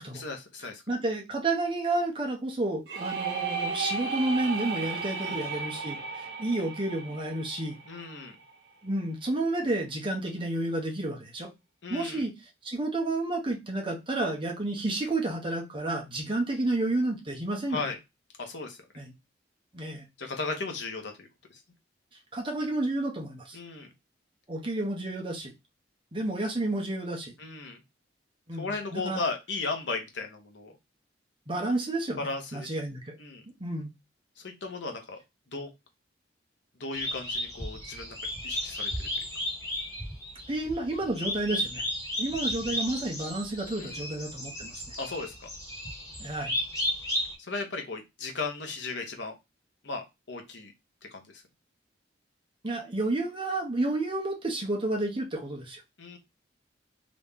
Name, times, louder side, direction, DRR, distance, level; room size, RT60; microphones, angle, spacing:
voice 1, 0.0-0.8 5.1-5.4 7.8-8.4 11.8-12.2 17.7-18.0 18.4-18.8 20.2-21.6 23.5-23.9 27.4-27.8 28.5-30.8 32.2-32.7 33.2-33.4 34.4-35.2 35.5-35.7 36.8-39.1 43.8-44.0 45.0-45.5 47.4-49.4 49.8-50.7 51.1-51.4 56.0-56.2, left 3 dB, 70° left, 4 dB, 1.0 m, -36 dB
voice 2, 0.9-7.8 8.8-11.5 11.9-12.3 12.6-17.8 19.0-19.1 19.7-20.0 22.3-23.6 24.5-25.5 26.1-27.3 28.5-29.2 31.5-33.2 33.6-33.9 40.5-41.8 42.2-44.8 46.2-46.5 52.6-55.8, right 2 dB, 30° right, 0 dB, 0.8 m, -30 dB
sound 1, 2.9-8.5, right 4 dB, 65° right, 1.1 m, -34 dB
sound 2, 36.9-47.3, left 1 dB, 15° left, 1.4 m, -34 dB
3.0 x 2.7 x 3.5 m, 0.22 s
head